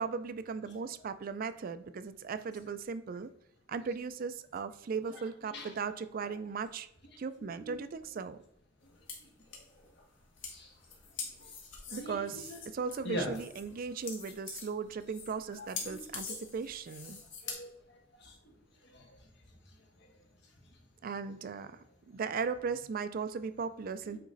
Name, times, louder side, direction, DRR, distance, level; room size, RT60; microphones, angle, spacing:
voice 1, 0.0-3.3 3.7-6.9 7.2-8.4 11.9-17.2 21.0-24.2, right 5 dB, 50° right, 12 dB, 0.4 m, -37 dB
voice 2, 7.4-7.7 10.5-10.7 11.4-11.5 11.9-12.6 13.0-13.3 15.6-16.0 17.4-18.3 18.8-19.3 24.1-24.2, equal, 60° left, 2 dB, 1.4 m, -43 dB
sound 1, 8.8-17.5, left 5 dB, 85° left, 1.7 m, -45 dB
8.6 x 3.1 x 3.9 m, 0.79 s
head